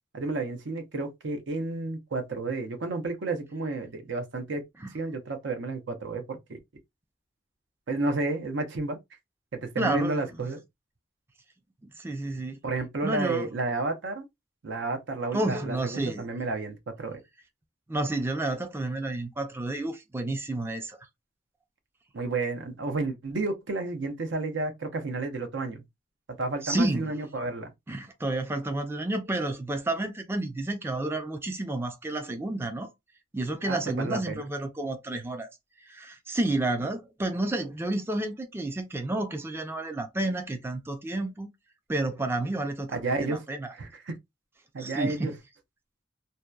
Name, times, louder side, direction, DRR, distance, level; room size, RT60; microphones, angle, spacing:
voice 1, 0.1-4.6 4.9-6.6 7.9-9.0 9.5-10.6 12.6-14.2 14.6-17.2 22.1-25.8 26.3-27.7 33.6-34.5 42.9-43.4 43.7-44.1 44.7-45.3, right 3 dB, 85° right, 0.6 m, -31 dB
voice 2, 9.8-10.2 11.9-12.6 13.0-13.5 15.3-16.2 17.9-21.0 26.6-27.1 27.9-32.9 33.3-35.5 35.8-41.5 41.9-43.7 44.8-45.3, right 2 dB, 15° right, 0.3 m, -30 dB
2.7 x 2.1 x 2.2 m
head